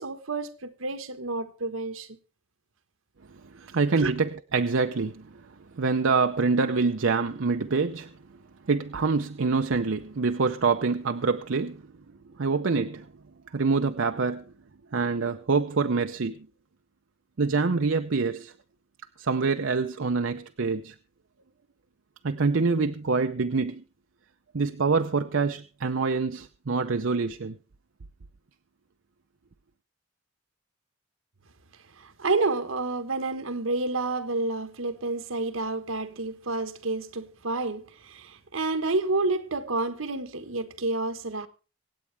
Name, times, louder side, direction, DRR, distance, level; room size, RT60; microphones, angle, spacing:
voice 1, 0.0-2.1 4.0-4.1 32.0-41.5, right 3 dB, 85° right, 1.3 m, -29 dB
voice 2, 3.7-5.4 5.7-8.1 8.7-11.8 12.4-13.1 13.5-14.4 14.9-16.5 17.4-18.5 19.2-20.9 22.2-23.8 24.5-27.6, right 4 dB, 70° right, 0.6 m, -25 dB
25.5 x 8.5 x 3.3 m
head